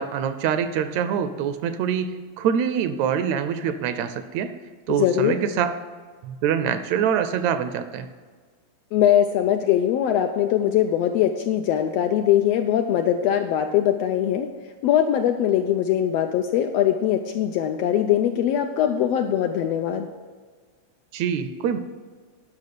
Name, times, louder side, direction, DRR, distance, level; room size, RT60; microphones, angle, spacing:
voice 1, 0.0-4.5 4.9-5.7 6.2-8.1 21.1-21.8, right 8 dB, 80° right, 10 dB, 1.8 m, -25 dB
voice 2, 4.9-5.3 8.9-14.5 14.8-20.1, left 10 dB, 80° left, 5 dB, 1.5 m, -21 dB
10.5 x 6.1 x 6.8 m, 1.5 s
omnidirectional pair, 3.4 m